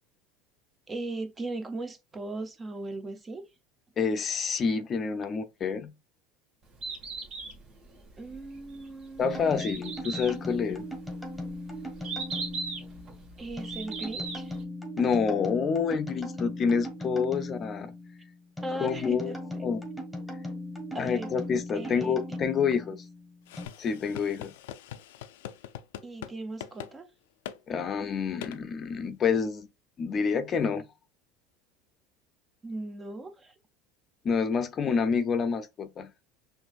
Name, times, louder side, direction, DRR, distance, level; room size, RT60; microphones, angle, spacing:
voice 1, 0.9-3.5 8.2-9.8 13.4-14.6 18.6-19.4 20.9-21.3 21.7-22.2 26.0-27.1 32.6-33.5, right 2 dB, 20° right, 0.6 m, -38 dB
voice 2, 4.0-5.9 9.2-10.8 15.0-17.9 18.8-19.3 19.6-19.8 20.9-23.0 23.8-24.5 27.7-29.7 30.0-30.9 34.2-36.1, left 6 dB, 35° left, 0.5 m, -28 dB
Bird, 6.6-14.6, right 4 dB, 45° right, 1.7 m, -39 dB
sound 1, 9.2-23.7, left 1 dB, ahead, 1.4 m, -38 dB
sound 2, 23.5-26.3 26.6-26.9 27.4-27.6 28.4-28.6, left 11 dB, 90° left, 0.4 m, -42 dB
6.1 x 2.6 x 2.4 m
supercardioid pair, 120°, 0 cm